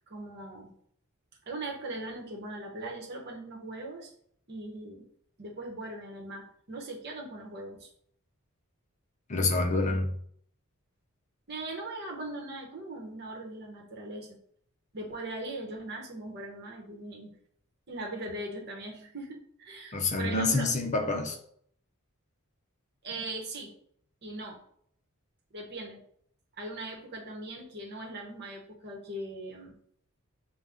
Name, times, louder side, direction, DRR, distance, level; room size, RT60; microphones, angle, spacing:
voice 1, 0.1-0.7 1.5-4.1 4.5-5.0 5.4-7.9 11.5-14.4 14.9-17.3 17.9-20.7 23.0-23.7 24.2-24.6 25.5-26.0 26.6-29.7, right 2 dB, 50° right, 1.0 m, -40 dB
voice 2, 9.3-10.2 19.9-21.4, left 3 dB, 35° left, 0.5 m, -27 dB
5.2 x 2.2 x 3.5 m
head